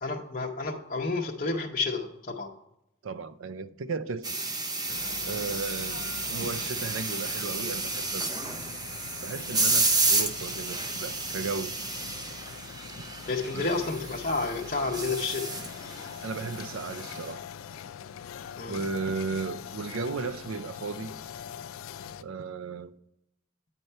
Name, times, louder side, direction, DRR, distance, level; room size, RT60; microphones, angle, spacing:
voice 1, 0.0-2.5 13.3-15.5 18.6-18.8, left 3 dB, 40° left, 0.7 m, -30 dB
voice 2, 3.0-4.4 5.3-8.3 9.2-11.8 13.5-13.7 16.2-17.4 18.7-21.1 22.0-22.9, right 4 dB, 70° right, 0.5 m, -35 dB
sound 1, 4.2-17.3, right 3 dB, 20° right, 0.7 m, -31 dB
sound 2, 4.9-22.2, left 7 dB, 90° left, 0.4 m, -43 dB
9.1 x 4.5 x 5.4 m
head